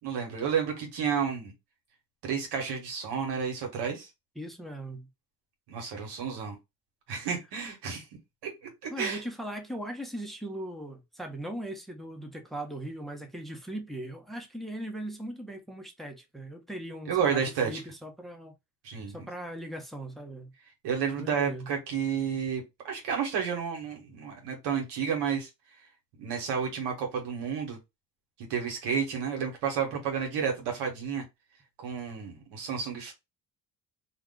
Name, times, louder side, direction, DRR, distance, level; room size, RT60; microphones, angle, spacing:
voice 1, 0.0-1.5 2.2-4.1 5.7-6.6 7.1-8.0 8.4-9.2 17.1-17.8 18.8-19.3 20.8-25.5 26.2-27.8 28.5-31.2 31.8-33.1, right 7 dB, 85° right, 1.2 m, -31 dB
voice 2, 4.4-5.1 8.9-18.5 19.1-20.5 21.2-21.7, right 1 dB, ahead, 0.8 m, -39 dB
2.4 x 2.3 x 3.6 m
supercardioid pair, 70°, 39 cm